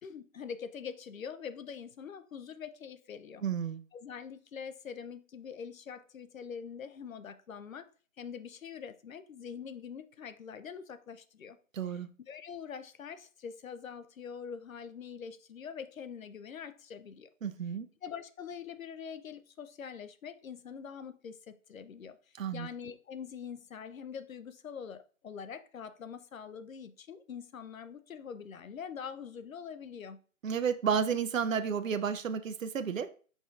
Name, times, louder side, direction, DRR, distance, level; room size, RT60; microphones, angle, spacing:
voice 1, 0.0-3.4 3.9-7.9 8.2-11.6 11.9-17.3 18.0-22.2 22.5-30.2 31.1-31.2, left 7 dB, 80° left, 12 dB, 0.6 m, -44 dB
voice 2, 3.4-3.8 11.7-12.1 17.4-17.9 22.3-22.7 30.4-33.1, right 7 dB, 75° right, 10 dB, 0.6 m, -31 dB
4.7 x 4.1 x 2.5 m, 0.40 s
hypercardioid pair, 170°, 40 cm